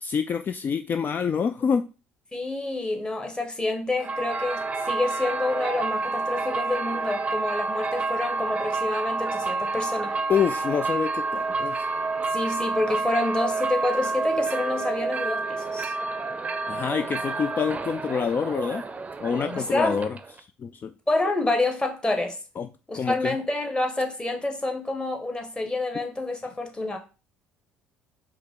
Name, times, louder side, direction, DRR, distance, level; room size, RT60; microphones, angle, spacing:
voice 1, 0.0-1.9 10.3-11.9 16.7-18.8 19.2-20.9 22.6-22.7 22.9-23.4, left 6 dB, 35° left, 0.3 m, -27 dB
voice 2, 2.3-10.1 12.3-15.9 19.6-20.0 21.1-22.4 22.9-27.0, left 2 dB, 15° left, 1.2 m, -28 dB
sound 1, 4.0-20.4, right 3 dB, 25° right, 0.6 m, -29 dB
4.8 x 2.9 x 3.6 m
hypercardioid pair, 55°, 5 cm